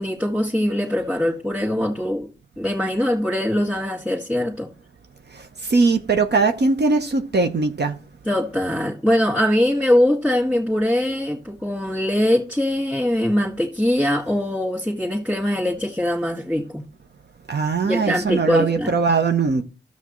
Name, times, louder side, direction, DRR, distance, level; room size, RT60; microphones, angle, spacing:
voice 1, 0.0-2.3 2.6-4.7 8.3-16.8 17.8-18.9, left 1 dB, 5° right, 2.0 m, -22 dB
voice 2, 5.3-7.9 17.5-19.6, right 4 dB, 55° right, 0.8 m, -20 dB
12.5 x 7.2 x 3.1 m
cardioid pair, 45°, 21 cm